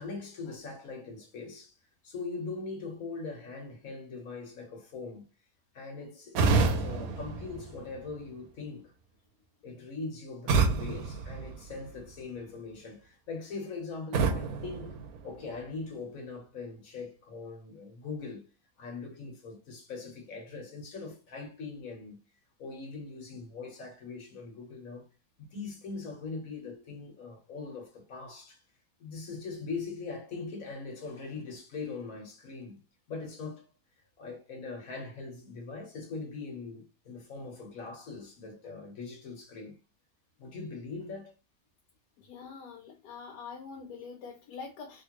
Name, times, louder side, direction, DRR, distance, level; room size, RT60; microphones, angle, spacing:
voice 1, 0.0-1.7 2.0-5.3 5.7-8.9 9.6-15.0 15.2-18.5 18.8-22.2 22.6-25.0 25.4-28.6 29.0-32.8 33.1-33.6 34.2-39.8 40.4-41.3, left 4 dB, 60° left, 1.4 m, -41 dB
sound 1, 6.3-8.3 10.5-12.2 14.1-15.7, right 4 dB, 70° right, 1.0 m, -29 dB
voice 2, 42.2-45.0, left 5 dB, 85° left, 1.2 m, -44 dB
3.4 x 2.5 x 2.9 m
omnidirectional pair, 1.7 m